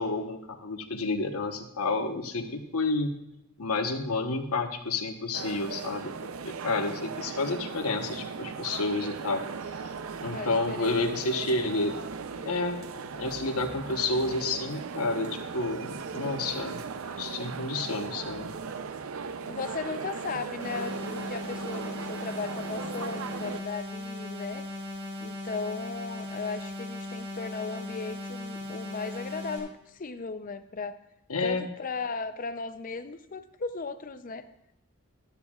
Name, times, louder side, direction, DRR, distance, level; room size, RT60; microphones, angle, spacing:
voice 1, 0.0-3.1 3.6-6.1 6.4-9.4 10.2-12.0 12.4-12.8 13.1-16.8 17.2-18.7 31.3-31.7, left 3 dB, 85° left, 6 dB, 1.1 m, -30 dB
sound 1, 5.3-23.6, right 5 dB, 70° right, 0.6 m, -38 dB
voice 2, 6.7-7.0 10.2-11.0 19.5-24.7 25.2-31.0 31.4-34.4, left 4 dB, 40° left, 11 dB, 0.5 m, -36 dB
sound 2, 20.6-29.6, left 2 dB, 30° right, 4.8 m, -38 dB
14.5 x 12.0 x 2.4 m, 0.84 s
head